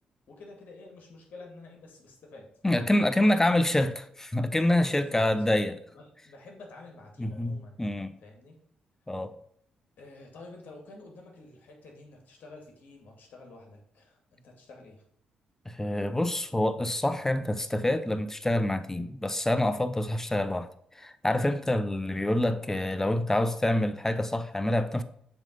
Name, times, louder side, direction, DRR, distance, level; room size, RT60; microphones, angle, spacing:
voice 1, 0.3-3.3 4.9-5.3 5.9-7.8 8.2-8.6 10.0-15.0 21.6-21.8, left 2 dB, 65° left, 2.1 m, -49 dB
voice 2, 2.6-5.8 7.2-8.1 9.1-9.3 15.7-20.7 21.0-25.0, left 1 dB, 15° left, 0.7 m, -26 dB
7.1 x 3.3 x 5.3 m
supercardioid pair, 50°, 3 cm